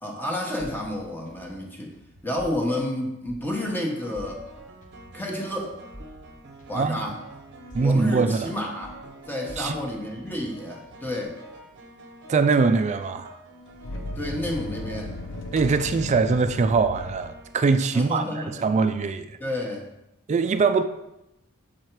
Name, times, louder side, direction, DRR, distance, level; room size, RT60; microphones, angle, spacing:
voice 1, 0.0-4.5 5.1-5.8 6.7-7.2 7.8-9.0 9.3-11.4 14.2-15.1 17.9-18.7 19.4-19.9, left 1 dB, 10° left, 1.0 m, -30 dB
sound 1, 0.6-3.7 4.1-8.6 8.8-11.3, equal, 35° left, 1.0 m, -49 dB
sound 2, 2.0-2.3 3.5-18.4, right 1 dB, 50° right, 0.8 m, -47 dB
voice 2, 6.7-7.1 7.7-8.5 9.6-9.7 12.3-13.3 15.5-18.2 18.5-19.4 20.3-20.8, right 4 dB, 30° right, 0.3 m, -22 dB
sound 3, 12.5-12.6 13.7-17.4, left 2 dB, 65° left, 0.7 m, -35 dB
6.6 x 4.5 x 4.6 m
head